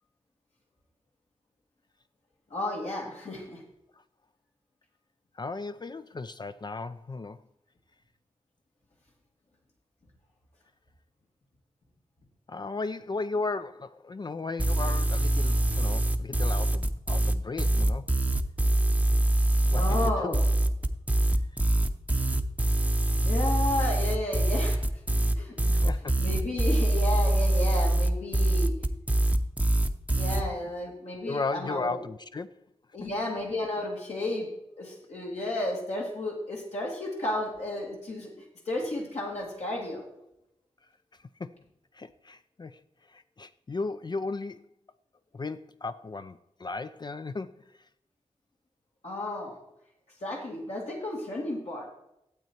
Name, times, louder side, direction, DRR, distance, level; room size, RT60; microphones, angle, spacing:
voice 1, 2.5-3.6 19.7-20.5 23.2-24.8 25.4-25.8 26.2-28.7 30.2-32.0 32.9-34.5 34.8-38.3 38.7-40.0 49.0-49.6 50.2-51.9, left 1 dB, 75° left, 2.4 m, -32 dB
voice 2, 5.4-7.4 12.5-18.1 19.7-20.4 25.8-26.2 31.3-32.5 33.0-33.1 41.4-41.6 41.9-42.8 43.1-44.6 45.3-47.6, left 3 dB, 40° left, 0.4 m, -35 dB
sound 1, 14.6-30.4, right 1 dB, 10° right, 0.7 m, -24 dB
12.0 x 8.0 x 4.5 m
wide cardioid pair, 75°, 11 cm